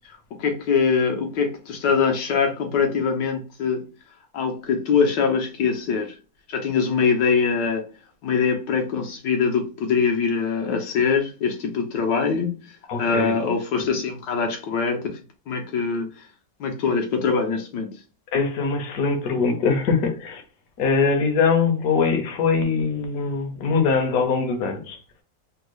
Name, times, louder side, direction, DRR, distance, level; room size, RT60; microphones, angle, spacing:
voice 1, 0.4-3.8 4.3-6.1 6.5-7.8 8.2-12.7 13.0-16.3 16.6-17.9, left 5 dB, 85° left, 1.4 m, -23 dB
voice 2, 12.9-13.4 18.3-20.4 20.8-25.0, left 5 dB, 65° left, 1.2 m, -22 dB
3.5 x 2.3 x 3.0 m
omnidirectional pair, 1.8 m